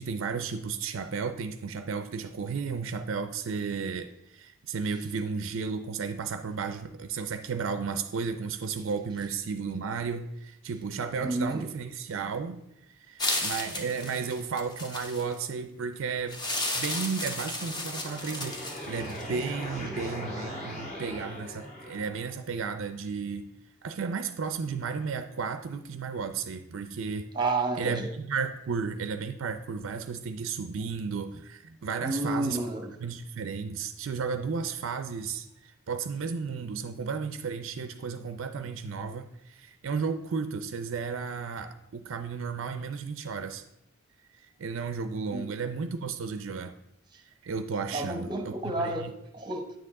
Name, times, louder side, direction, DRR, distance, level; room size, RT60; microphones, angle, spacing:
voice 1, 0.0-12.6 13.1-16.4 16.7-18.6 18.9-23.5 23.8-27.3 27.7-32.6 33.0-43.6 44.6-46.7 47.4-49.1, right 5 dB, 60° right, 9 dB, 0.4 m, -33 dB
voice 2, 11.2-11.7 19.7-20.0 27.3-28.1 32.0-32.9 45.3-45.5 47.9-49.7, right 2 dB, 20° right, 5 dB, 0.9 m, -31 dB
sound 1, 13.2-15.3 16.3-19.3, left 2 dB, 20° left, 0.9 m, -33 dB
sound 2, 17.4-22.4, left 1 dB, 35° left, 2.0 m, -40 dB
9.2 x 6.8 x 3.6 m, 0.85 s
head